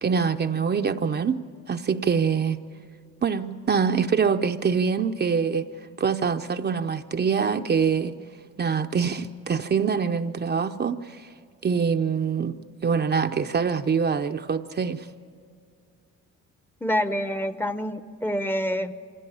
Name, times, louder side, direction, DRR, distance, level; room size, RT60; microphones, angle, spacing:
voice 1, 0.0-1.4 1.7-2.6 3.2-5.7 6.0-8.1 8.6-11.3 11.6-12.6 12.8-15.1, right 6 dB, 35° right, 0.6 m, -24 dB
voice 2, 16.8-18.9, equal, 5° left, 0.8 m, -27 dB
24.5 x 16.5 x 10.0 m
cardioid pair, 90°, 30 cm